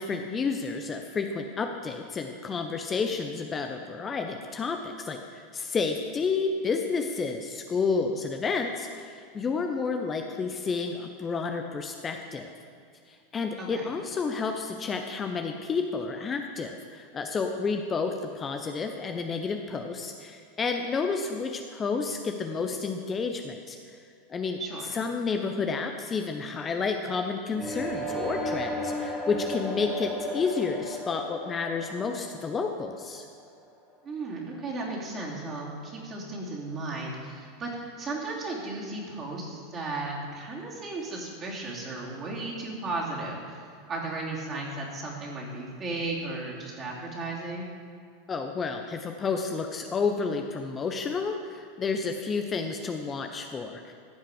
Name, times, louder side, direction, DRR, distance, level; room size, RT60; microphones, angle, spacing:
voice 1, 0.0-12.5 13.1-23.8 24.3-24.6 24.9-33.3 48.3-53.9, left 4 dB, 25° left, 4 dB, 0.7 m, -30 dB
voice 2, 24.6-25.0 34.0-43.6 43.9-47.7, right 2 dB, 30° right, -3 dB, 2.9 m, -35 dB
sound 1, 27.5-33.4, equal, ahead, 2.4 m, -34 dB
15.0 x 5.7 x 5.0 m, 2.3 s
figure-of-eight pair, 85°, 0 cm